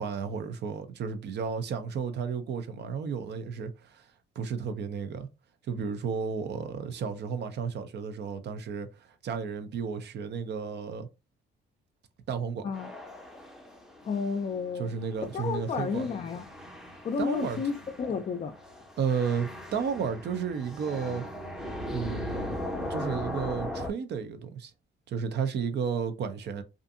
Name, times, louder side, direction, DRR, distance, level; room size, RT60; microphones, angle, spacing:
voice 1, 0.0-4.0 4.4-5.3 5.7-11.1 12.3-12.6 14.8-16.0 17.2-17.6 19.0-21.2 21.9-22.6 22.9-24.7 25.1-26.6, right 6 dB, 60° right, 0.5 m, -32 dB
sound 1, 12.7-23.9, left 1 dB, 5° right, 0.6 m, -39 dB
voice 2, 14.0-14.9 15.2-16.5 17.0-18.6, left 5 dB, 35° left, 0.4 m, -31 dB
2.5 x 2.5 x 2.5 m
cardioid pair, 90°, 20 cm